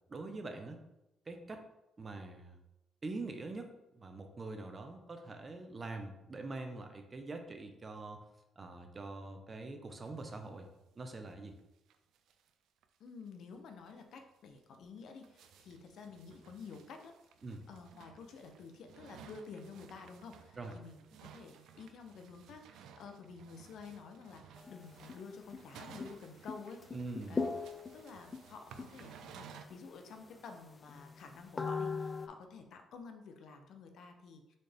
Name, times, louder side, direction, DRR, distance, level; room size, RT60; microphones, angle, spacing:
voice 1, 0.1-0.8 1.3-1.6 2.0-2.6 3.0-3.7 3.9-8.2 8.6-10.7 10.9-11.5 17.4-17.6 20.6-20.7 26.9-27.5, right 3 dB, 35° right, 5 dB, 0.7 m, -44 dB
sound 1, 10.0-10.5 10.8-10.9 11.1-11.2 11.6-11.7 11.9-12.5 12.8-12.9 13.3-13.4 13.9-14.0 14.6-29.6, right 7 dB, 85° right, 0.4 m, -57 dB
voice 2, 13.0-17.1 17.7-26.8 27.3-34.6, left 5 dB, 70° left, 5 dB, 0.6 m, -51 dB
sound 2, 24.6-25.2 25.5-25.6 26.0-26.2 26.5-28.4 28.8-29.3 29.7-29.8 30.2-30.3 30.9-32.3, left 4 dB, 30° left, 0.3 m, -39 dB
4.2 x 3.7 x 3.4 m, 0.90 s
cardioid pair, 90°, 0 cm